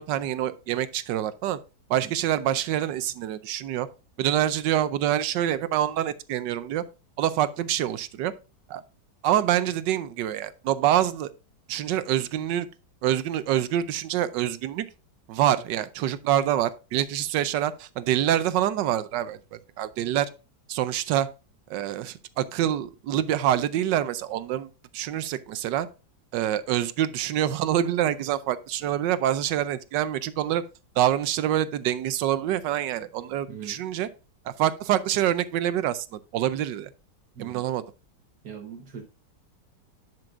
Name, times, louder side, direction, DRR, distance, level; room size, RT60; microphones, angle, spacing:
voice 1, 0.0-1.6 1.9-3.9 4.2-6.8 7.2-8.3 8.7-8.8 9.2-11.3 11.7-12.7 13.0-14.9 15.3-20.3 20.7-21.3 21.7-25.9 26.3-30.6 31.0-34.1 34.5-36.9 37.4-37.8, right 11 dB, 90° right, 1.3 m, -26 dB
voice 2, 33.5-33.8 37.4-37.7 38.4-39.0, right 7 dB, 65° right, 1.8 m, -40 dB
10.5 x 6.1 x 2.5 m
omnidirectional pair, 1.9 m